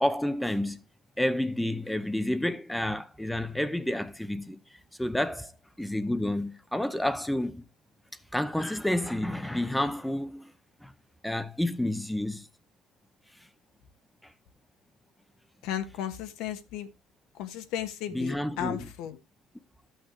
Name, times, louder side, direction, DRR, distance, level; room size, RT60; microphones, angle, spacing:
voice 1, 0.0-0.8 1.2-4.6 5.0-5.5 5.8-7.6 8.3-10.5 10.8-10.9 11.2-12.5 14.2-14.3 18.1-18.9, left 1 dB, 5° left, 0.6 m, -29 dB
voice 2, 15.6-16.9 17.4-19.2, left 11 dB, 75° left, 1.3 m, -35 dB
13.0 x 6.3 x 3.1 m
cardioid pair, 140°, 0 cm